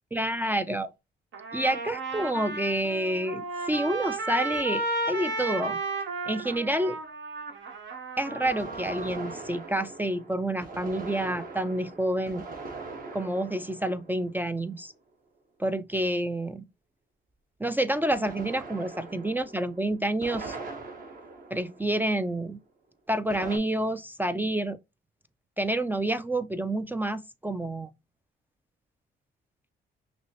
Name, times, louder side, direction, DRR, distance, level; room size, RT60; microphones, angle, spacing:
voice 1, 0.1-0.9 1.5-5.8 6.3-7.0 8.2-12.4 13.1-14.9 15.6-16.6 17.6-20.6 21.5-22.6 23.1-24.8 25.6-27.9, right 1 dB, 10° right, 0.3 m, -28 dB
Trumpet, 1.3-9.4, right 2 dB, 70° right, 1.2 m, -34 dB
sound 1, 4.5-4.6 8.5-15.0 18.1-22.3 23.3-23.6, right 3 dB, 45° right, 1.1 m, -42 dB
5.9 x 2.0 x 2.7 m
cardioid pair, 90°, 20 cm